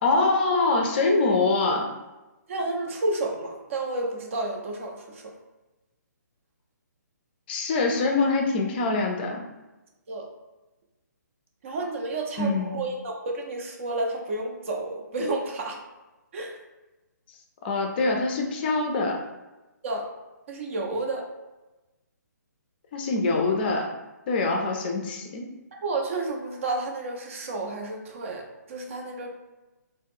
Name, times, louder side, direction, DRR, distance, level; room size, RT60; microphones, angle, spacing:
voice 1, 0.0-1.9 7.5-9.4 12.4-12.8 17.6-19.2 22.9-23.9 24.3-25.5, left 3 dB, 30° left, 2 dB, 0.4 m, -24 dB
voice 2, 2.5-5.3 10.1-10.3 11.6-15.8 16.3-16.6 19.8-20.1 20.5-21.3 25.7-29.4, right 2 dB, 45° right, 1 dB, 0.5 m, -31 dB
2.3 x 2.0 x 3.4 m, 1.1 s
figure-of-eight pair, 140°, 10 cm